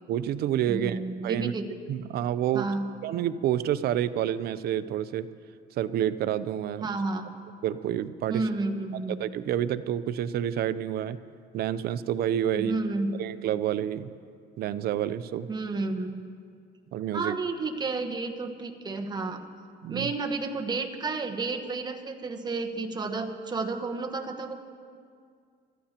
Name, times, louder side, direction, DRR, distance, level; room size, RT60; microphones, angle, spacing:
voice 1, 0.1-1.5 1.9-2.7 3.0-5.3 5.8-6.9 7.6-8.4 9.1-11.2 11.5-12.8 13.2-14.1 14.6-15.5 16.9-17.4 19.8-20.1, right 11 dB, 65° right, 14 dB, 0.6 m, -28 dB
voice 2, 0.7-1.6 2.5-2.9 6.8-7.3 8.3-9.2 12.6-13.2 15.5-16.1 17.1-19.4 19.9-24.6, right 3 dB, 25° right, 4 dB, 1.1 m, -31 dB
25.0 x 14.0 x 2.9 m, 2.2 s
cardioid pair, 110°, 17 cm